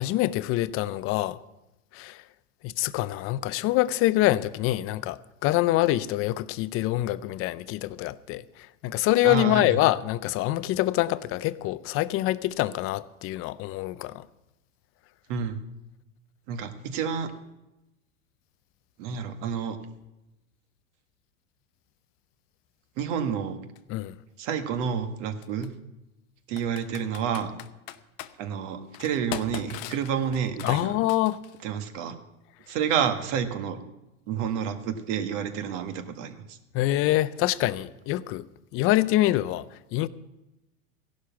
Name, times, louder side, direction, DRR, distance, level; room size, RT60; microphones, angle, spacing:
voice 1, 0.0-1.4 1.9-2.2 2.6-14.3 23.9-24.2 30.6-31.4 36.7-38.4 38.7-39.6 39.9-40.1, left 16 dB, 30° left, 0.5 m, -25 dB
voice 2, 9.2-9.7 15.3-15.6 16.5-17.3 19.0-19.8 23.0-23.6 24.4-25.7 26.5-27.5 28.4-30.9 31.6-32.1 32.7-33.8 34.3-36.6, right 7 dB, 55° right, 1.7 m, -29 dB
Computer keyboard, 23.7-23.8 25.4-25.7 26.6-28.3 28.9-31.6, left 14 dB, 50° left, 0.9 m, -39 dB
15.5 x 11.5 x 5.9 m
hypercardioid pair, 120°, 43 cm